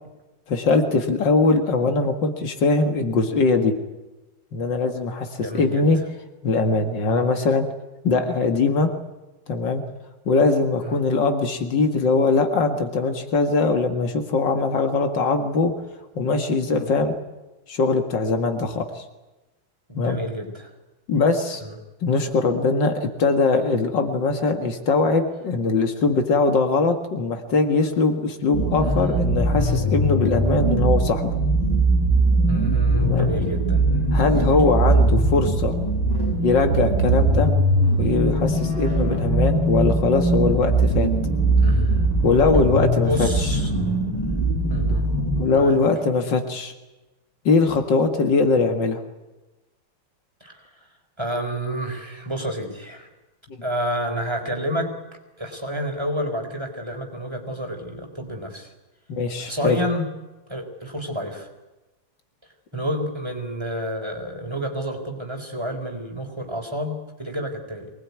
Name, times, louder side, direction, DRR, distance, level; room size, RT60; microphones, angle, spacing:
voice 1, 0.5-3.7 4.5-6.0 6.4-7.7 8.0-8.9 9.5-9.8 10.3-15.7 16.2-17.2 17.7-19.0 20.0-20.2 21.1-21.6 22.0-31.3 33.0-33.3 34.1-35.7 36.4-37.5 38.0-41.1 42.2-43.3 45.4-46.7 47.5-49.0 59.1-59.8, left 3 dB, 80° left, 6 dB, 2.5 m, -21 dB
voice 2, 5.4-5.9 7.1-7.3 10.8-11.0 16.8-16.9 19.9-20.7 21.6-21.7 28.8-29.1 32.5-34.8 41.6-42.1 43.0-43.7 44.7-45.1 45.5-45.8 50.4-50.9 51.2-53.1 53.6-54.9 55.4-58.7 59.4-60.1 60.5-61.5 62.7-67.9, equal, 15° right, 2 dB, 4.1 m, -30 dB
sound 1, 28.5-45.4, right 2 dB, 10° left, 6.8 m, -21 dB
24.0 x 19.5 x 9.6 m, 1.1 s
omnidirectional pair, 1.9 m